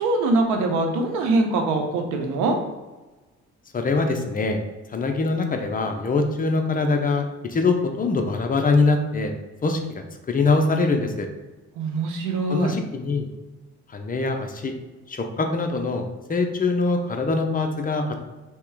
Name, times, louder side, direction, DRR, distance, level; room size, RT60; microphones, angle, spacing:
voice 1, 0.0-2.6 11.8-12.7, right 2 dB, 85° right, 3 dB, 0.9 m, -23 dB
voice 2, 3.7-4.6 4.9-9.3 9.6-11.3 12.5-13.3 13.9-14.7 15.1-18.2, left 3 dB, 30° left, 4 dB, 0.6 m, -23 dB
3.6 x 3.0 x 4.6 m, 1.2 s
cardioid pair, 95°, 29 cm